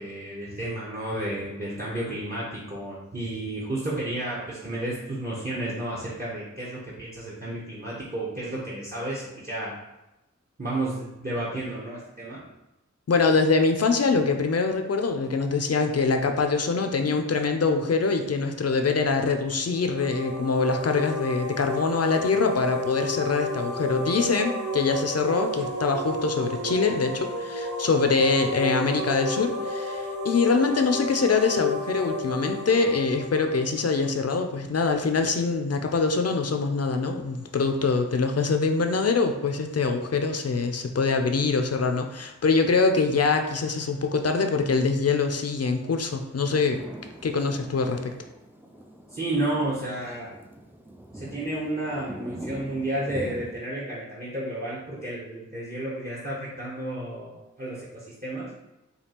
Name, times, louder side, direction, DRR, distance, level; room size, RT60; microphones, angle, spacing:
voice 1, 0.0-9.7 10.6-12.4 49.1-50.4 51.1-58.5, right 1 dB, 30° right, -7 dB, 0.8 m, -32 dB
voice 2, 13.1-46.8 47.2-48.2, left 4 dB, 55° left, 5 dB, 0.5 m, -24 dB
sound 1, 19.7-34.4, left 1 dB, 80° right, 0.7 m, -32 dB
sound 2, 46.5-53.5, right 1 dB, 5° right, 0.4 m, -42 dB
5.1 x 2.3 x 2.9 m, 0.96 s
wide cardioid pair, 70°, 30 cm